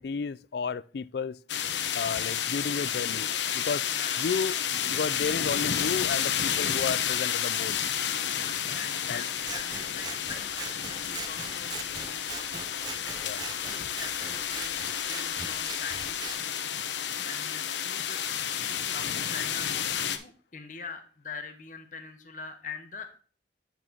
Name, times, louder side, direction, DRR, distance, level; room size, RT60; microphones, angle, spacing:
voice 1, 0.0-1.4 1.9-3.3 3.5-3.9 4.2-7.7 9.1-9.2 13.2-13.4, left 5 dB, 60° left, 0.4 m, -32 dB
sound 1, 1.5-20.2, left 9 dB, 75° left, 0.9 m, -31 dB
voice 2, 3.9-4.2 8.6-10.6 11.0-13.0 13.5-18.5 18.8-23.2, left 5 dB, 45° left, 0.9 m, -44 dB
Scissors, 9.4-16.4, right 5 dB, 20° right, 0.4 m, -42 dB
8.4 x 7.1 x 2.8 m
head